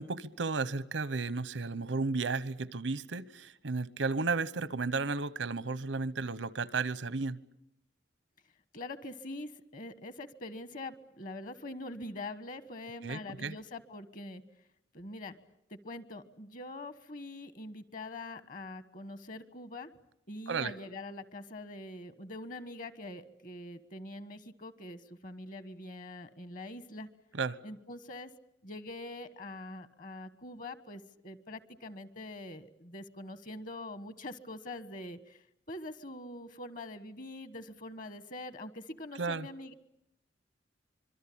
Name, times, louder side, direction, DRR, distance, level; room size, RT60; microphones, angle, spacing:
voice 1, 0.0-7.4 13.0-13.6 20.5-20.7 27.3-27.6 39.2-39.5, right 4 dB, 90° right, 18 dB, 0.9 m, -33 dB
voice 2, 8.7-14.4 14.9-15.4 15.7-19.9 20.3-27.1 27.6-28.3 28.6-35.4 35.7-39.7, left 2 dB, 50° left, 14 dB, 1.3 m, -44 dB
25.5 x 23.0 x 8.6 m, 0.78 s
head